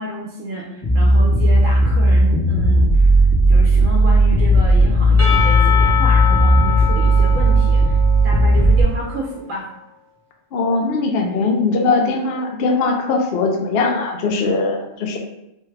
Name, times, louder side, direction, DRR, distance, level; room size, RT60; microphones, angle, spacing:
voice 1, 0.0-3.1 3.5-8.0 8.2-9.7, right 2 dB, 80° right, -2 dB, 1.0 m, -29 dB
sound 1, 0.8-8.8, right 1 dB, 25° left, 0.7 m, -14 dB
Percussion / Church bell, 5.2-9.2, left 7 dB, 20° right, 0.4 m, -24 dB
voice 2, 10.5-15.2, left 3 dB, 60° left, 2 dB, 0.6 m, -20 dB
3.1 x 2.3 x 3.2 m, 0.85 s
omnidirectional pair, 1.3 m